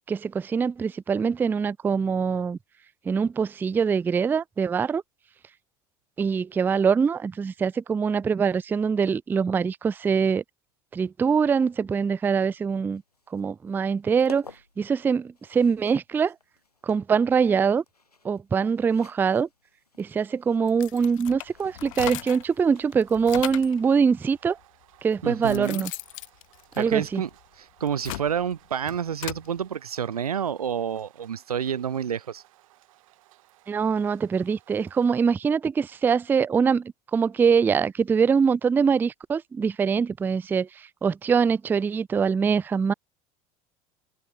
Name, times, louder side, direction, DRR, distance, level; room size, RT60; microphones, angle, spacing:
voice 1, 0.1-2.6 3.1-5.0 6.2-10.4 10.9-13.0 13.3-14.5 14.8-16.3 16.8-17.8 18.2-19.5 20.0-24.6 25.0-25.9 26.8-27.2 33.7-42.9, right 6 dB, 10° right, 0.3 m, -23 dB
sound 1, 12.9-23.7, left 3 dB, 85° left, 4.6 m, -53 dB
sound 2, 20.7-22.5 22.9-23.8 24.6-24.7 25.2-27.3 27.8-29.5, left 19 dB, 60° left, 1.4 m, -37 dB
sound 3, 21.6-35.3, right 17 dB, 60° right, 5.4 m, -59 dB
voice 2, 25.2-25.8 26.7-27.3 27.6-32.4, right 8 dB, 80° right, 0.5 m, -29 dB
open air
figure-of-eight pair, 70°, 19 cm